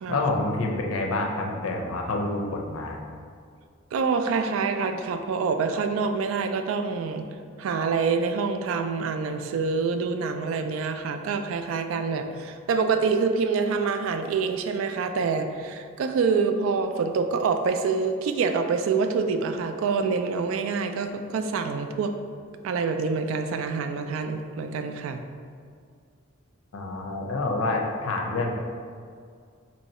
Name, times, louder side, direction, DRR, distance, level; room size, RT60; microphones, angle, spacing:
voice 1, 0.1-3.0 26.7-28.6, left 2 dB, 90° left, 1 dB, 0.5 m, -27 dB
voice 2, 3.9-7.3 7.6-22.1 22.6-25.2, right 5 dB, 80° right, 7 dB, 0.3 m, -26 dB
3.0 x 2.7 x 4.2 m, 2.2 s
head